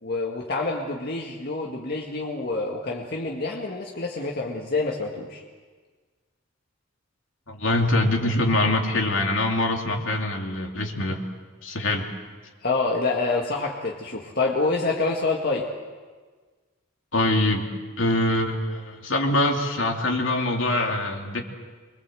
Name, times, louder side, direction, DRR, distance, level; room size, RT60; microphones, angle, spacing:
voice 1, 0.0-5.4 12.6-15.7, left 3 dB, 45° left, -1 dB, 2.0 m, -27 dB
voice 2, 7.5-11.2 11.6-12.1 17.1-21.4, left 1 dB, 60° left, 2 dB, 2.8 m, -24 dB
25.5 x 23.5 x 7.8 m, 1.5 s
head